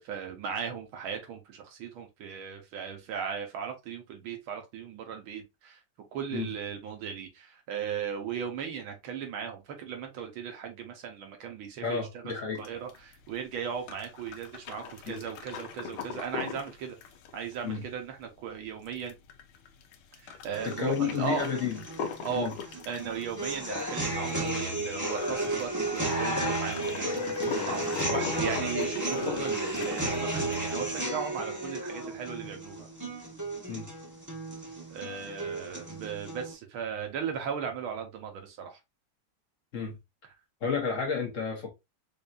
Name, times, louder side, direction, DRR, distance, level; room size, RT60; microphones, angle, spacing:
voice 1, 0.0-5.8 6.1-17.0 17.3-19.1 20.2-21.4 22.2-22.5 22.9-32.9 34.9-38.8, right 7 dB, 80° right, 1.9 m, -37 dB
voice 2, 11.8-12.6 15.1-15.2 17.6-17.8 20.6-21.8 22.3-22.5 33.7-33.9 35.2-35.4 39.7-40.0 40.6-41.7, left 6 dB, 50° left, 1.1 m, -31 dB
sound 1, 12.6-31.0, left 7 dB, 90° left, 1.6 m, -41 dB
sound 2, 20.5-36.5, right 1 dB, 15° right, 0.8 m, -33 dB
5.1 x 2.7 x 2.5 m
omnidirectional pair, 2.3 m